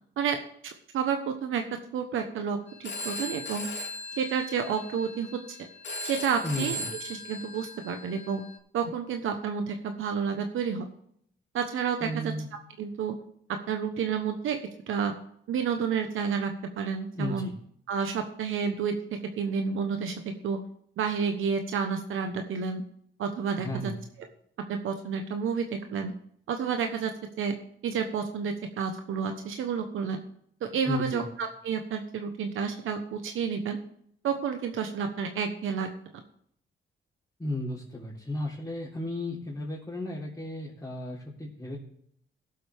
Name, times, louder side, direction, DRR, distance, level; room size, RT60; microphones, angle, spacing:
voice 1, 0.2-1.6 1.9-3.7 4.2-5.6 6.0-6.8 7.1-8.4 8.7-10.9 11.5-12.1 12.8-13.1 13.7-14.6 14.9-15.1 15.5-17.5 17.9-19.0 19.4-20.6 21.0-22.8 23.2-23.9 24.7-26.1 26.5-27.1 27.4-27.5 27.8-30.2 30.6-33.8 34.2-35.9, right 6 dB, 85° right, 5 dB, 1.1 m, -30 dB
Telephone, 2.7-8.6, left 1 dB, 65° left, 2.7 m, -38 dB
voice 2, 6.4-6.9 12.0-12.5 17.1-17.5 23.6-24.0 30.8-31.3 37.4-41.8, left 1 dB, 15° left, -7 dB, 3.5 m, -34 dB
17.0 x 7.8 x 3.5 m, 0.67 s
cardioid pair, 95°, 20 cm